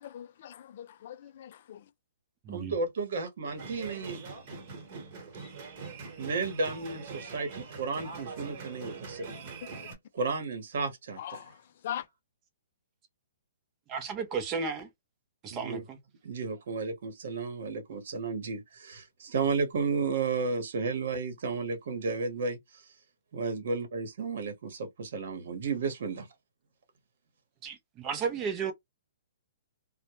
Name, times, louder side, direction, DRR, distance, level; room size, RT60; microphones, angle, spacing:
voice 1, 0.0-1.8 11.2-11.5 11.8-12.0, left 10 dB, 50° left, 0.3 m, -40 dB
voice 2, 2.5-4.2 6.2-9.5 10.1-11.4 15.5-15.8 16.2-22.6 23.3-26.3, right 4 dB, 65° right, 0.9 m, -33 dB
sound 1, 3.5-9.9, right 4 dB, 40° right, 1.1 m, -43 dB
voice 3, 13.9-14.9 15.4-16.0 27.6-28.7, right 5 dB, 25° right, 0.6 m, -33 dB
2.1 x 2.1 x 2.9 m
hypercardioid pair, 150°, 0 cm